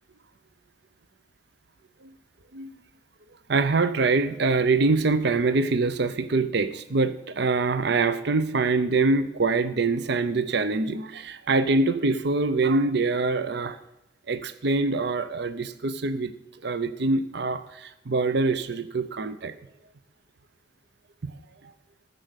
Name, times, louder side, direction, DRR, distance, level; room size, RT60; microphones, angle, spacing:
voice 1, 3.5-13.8 14.3-16.3 16.6-19.5 21.2-21.3, right 3 dB, 60° right, 13 dB, 0.6 m, -24 dB
14.0 x 6.6 x 8.1 m, 0.90 s
head